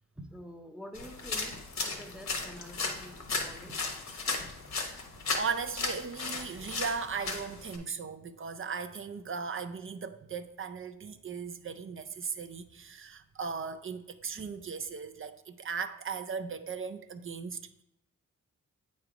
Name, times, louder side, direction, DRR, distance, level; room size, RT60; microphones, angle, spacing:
voice 1, 0.2-3.8 14.4-14.5, equal, 5° right, 0.7 m, -47 dB
sound 1, 0.9-7.8, left 3 dB, 60° left, 1.1 m, -36 dB
voice 2, 5.3-17.8, right 5 dB, 45° right, 0.5 m, -37 dB
8.1 x 3.2 x 4.9 m
cardioid pair, 85°, 31 cm